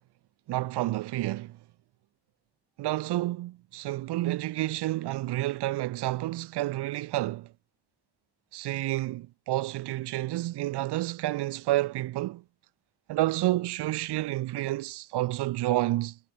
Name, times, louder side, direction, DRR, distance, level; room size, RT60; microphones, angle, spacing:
voice 1, 0.5-1.6 2.8-7.5 8.5-12.4 13.1-16.2, right 16 dB, 70° right, 0.5 m, -29 dB
cardioid pair, 65°, 42 cm